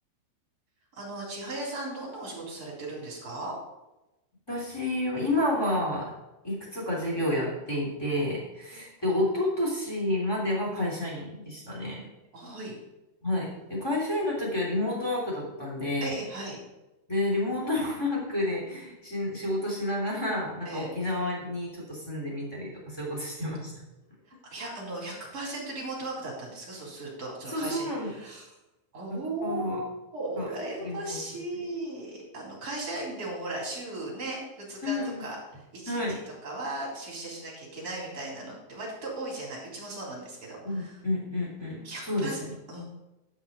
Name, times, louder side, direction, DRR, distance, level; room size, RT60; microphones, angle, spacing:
voice 1, 0.9-3.5 12.3-12.7 16.0-16.6 20.6-20.9 24.4-28.5 28.9-41.0 41.8-42.8, right 2 dB, 20° right, -3 dB, 3.3 m, -37 dB
voice 2, 4.5-6.1 6.4-12.0 13.2-16.1 17.1-23.7 27.5-28.1 29.4-29.8 30.4-30.5 30.8-31.2 34.8-35.2 35.9-36.2 40.6-42.5, left 1 dB, 10° left, -4 dB, 1.9 m, -30 dB
10.5 x 6.2 x 5.4 m, 1.0 s
omnidirectional pair, 5.4 m